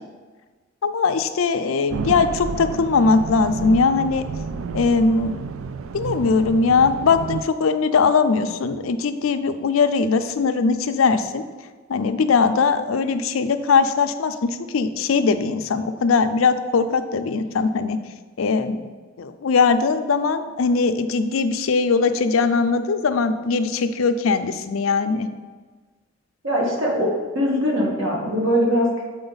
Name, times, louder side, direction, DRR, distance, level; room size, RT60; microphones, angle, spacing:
voice 1, 0.8-4.2 4.7-5.4 5.9-11.4 11.9-18.0 18.4-18.9 19.2-25.3, left 4 dB, 85° left, 9 dB, 0.4 m, -20 dB
sound 1, 1.9-7.4, right 5 dB, 90° right, 0.4 m, -30 dB
voice 2, 26.4-29.0, equal, 75° right, -2 dB, 1.6 m, -21 dB
7.8 x 4.4 x 4.0 m, 1.4 s
head